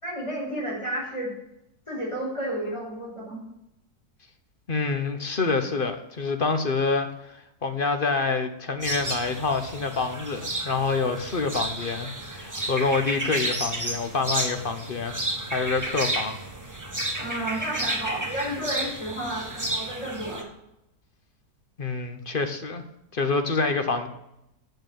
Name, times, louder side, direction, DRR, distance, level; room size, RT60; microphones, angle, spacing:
voice 1, 0.0-1.3 1.9-3.4 17.2-20.5, right 1 dB, 20° left, -5 dB, 5.2 m, -32 dB
voice 2, 4.7-15.1 15.5-16.4 21.8-22.8 23.1-24.1, left 4 dB, 40° left, 7 dB, 0.9 m, -27 dB
sound 1, 8.8-20.4, right 1 dB, 10° right, 1.3 m, -32 dB
8.7 x 6.6 x 8.0 m, 0.84 s
omnidirectional pair, 1.7 m